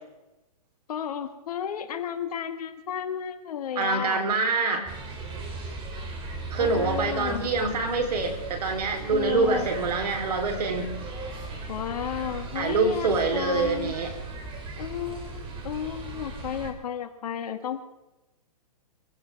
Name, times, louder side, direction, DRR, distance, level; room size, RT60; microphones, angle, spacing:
voice 1, 0.9-4.3 6.6-7.4 9.1-9.7 11.7-14.0 14.8-17.8, left 9 dB, 65° left, 7 dB, 2.1 m, -33 dB
voice 2, 3.8-4.9 6.5-11.0 12.5-14.1, right 4 dB, 75° right, 4 dB, 3.9 m, -25 dB
sound 1, 4.9-16.7, right 3 dB, 25° right, 2.8 m, -37 dB
24.0 x 16.0 x 3.6 m, 1.0 s
hypercardioid pair, 135°, 21 cm